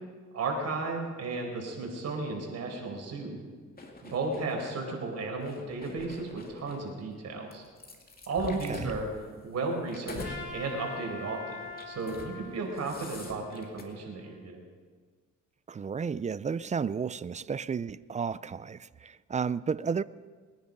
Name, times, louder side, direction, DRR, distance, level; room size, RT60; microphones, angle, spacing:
voice 1, 0.3-3.4 4.0-7.6 8.3-9.1 9.4-14.6, right 3 dB, 60° right, 4.7 m, -34 dB
sound 1, 3.8-4.8 5.4-6.9 7.5-10.4 10.8-11.1 11.7-12.3 12.6-13.8, left 3 dB, 30° left, 2.5 m, -44 dB
voice 2, 8.5-8.9 15.7-20.0, right 6 dB, 25° right, 0.4 m, -32 dB
Trumpet, 10.2-14.5, left 3 dB, 70° left, 5.5 m, -44 dB
22.5 x 10.0 x 5.4 m
cardioid pair, 90°, 30 cm